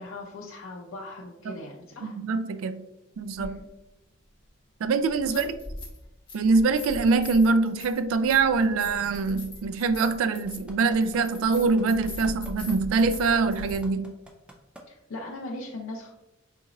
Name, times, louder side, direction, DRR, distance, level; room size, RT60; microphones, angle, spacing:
voice 1, 0.0-2.2 3.4-3.7 5.2-5.6 14.9-16.1, left 2 dB, 85° left, 0.5 m, -39 dB
voice 2, 2.0-2.8 3.2-3.6 4.8-5.5 6.3-14.1, right 4 dB, 85° right, 0.3 m, -24 dB
sound 1, 3.4-3.5 5.1-6.0 6.3-13.8, left 1 dB, 25° left, 1.1 m, -40 dB
sound 2, 10.0-14.8 15.3-15.4, right 1 dB, 5° right, 0.4 m, -47 dB
3.9 x 2.9 x 2.5 m
head